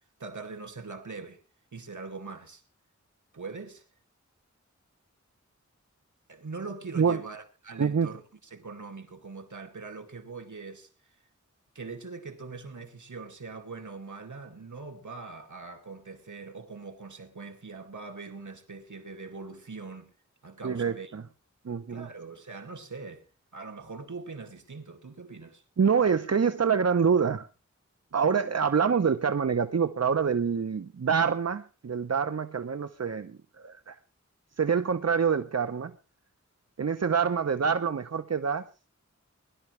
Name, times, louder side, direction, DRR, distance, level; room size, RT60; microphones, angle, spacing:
voice 1, 0.2-1.4 1.7-2.6 3.3-3.8 6.3-8.2 8.5-10.9 11.7-20.1 20.4-21.1 21.9-23.2 23.5-25.6, right 4 dB, 80° right, 2.3 m, -42 dB
voice 2, 20.6-21.2 21.6-22.1 25.8-27.5 28.1-34.0 34.6-35.9 36.8-38.6, right 6 dB, 60° right, 0.8 m, -26 dB
21.5 x 12.0 x 3.2 m
wide cardioid pair, 55°, 30 cm